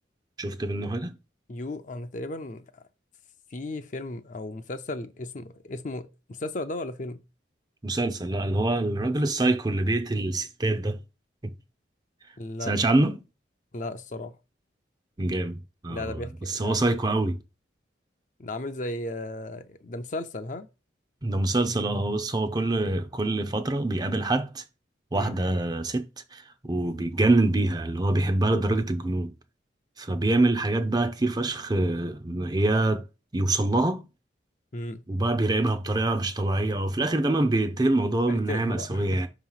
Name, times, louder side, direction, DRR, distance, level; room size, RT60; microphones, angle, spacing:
voice 1, 0.4-1.1 7.8-11.0 11.4-11.5 12.6-13.2 15.2-16.0 16.5-17.4 21.2-24.6 25.1-29.3 30.0-33.0 33.3-34.0 35.1-39.3, right 2 dB, 20° right, 0.6 m, -25 dB
voice 2, 1.5-2.8 3.5-7.2 12.4-12.7 13.7-14.4 15.9-16.8 18.4-20.7 25.1-25.3 34.7-35.0 38.3-39.2, left 2 dB, 40° left, 0.6 m, -35 dB
5.8 x 3.0 x 5.6 m
head